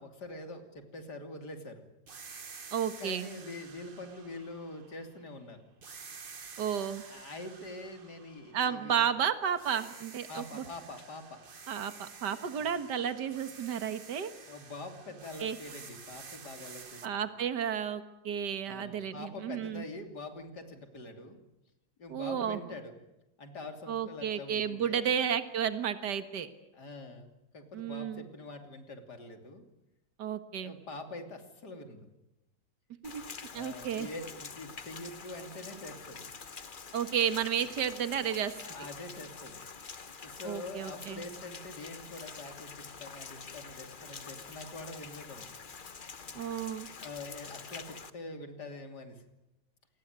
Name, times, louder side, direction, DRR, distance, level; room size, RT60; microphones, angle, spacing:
voice 1, 0.0-1.8 2.8-5.6 7.0-9.0 10.3-11.4 12.6-12.7 14.5-17.0 18.6-21.4 22.0-22.9 23.4-25.1 26.7-29.6 30.6-32.1 33.5-36.3 37.6-37.7 38.6-39.6 40.2-45.5 47.0-49.2, left 2 dB, 70° left, 6 dB, 3.5 m, -45 dB
sound 1, 2.1-5.3 5.8-9.2 9.6-17.1, right 5 dB, 35° right, 1.2 m, -50 dB
voice 2, 2.7-3.3 6.6-7.0 8.5-10.6 11.7-14.3 15.4-15.6 17.0-19.8 22.1-22.6 23.9-26.5 27.7-28.3 30.2-30.7 33.0-33.2 33.5-34.1 36.9-38.6 40.5-41.2 46.3-46.9, right 8 dB, 75° right, 10 dB, 2.1 m, -32 dB
Rain, 33.0-48.1, left 5 dB, 35° left, 1.1 m, -46 dB
27.0 x 19.5 x 9.3 m, 0.96 s
omnidirectional pair, 1.9 m